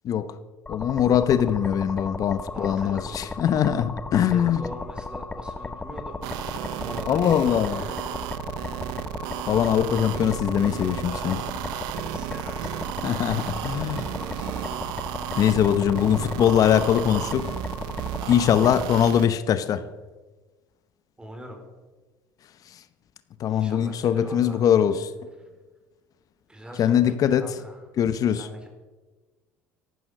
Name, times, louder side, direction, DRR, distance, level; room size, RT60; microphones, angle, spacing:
voice 1, 0.7-4.6 7.1-7.8 9.5-11.4 13.0-14.1 15.4-17.5 18.3-19.8 23.4-25.1 26.8-27.6 28.0-28.5, left 9 dB, 50° left, 0.9 m, -22 dB
sound 1, 0.7-18.8, left 3 dB, 20° left, 1.2 m, -36 dB
voice 2, 2.5-3.6 4.3-6.2 6.8-8.0 8.8-9.1 12.1-14.8 21.2-21.6 23.5-24.6 26.5-27.8 28.3-28.7, right 1 dB, 10° right, 3.8 m, -42 dB
sound 2, 6.2-19.3, right 14 dB, 70° right, 0.7 m, -34 dB
14.5 x 11.5 x 6.3 m
hypercardioid pair, 70°, 8 cm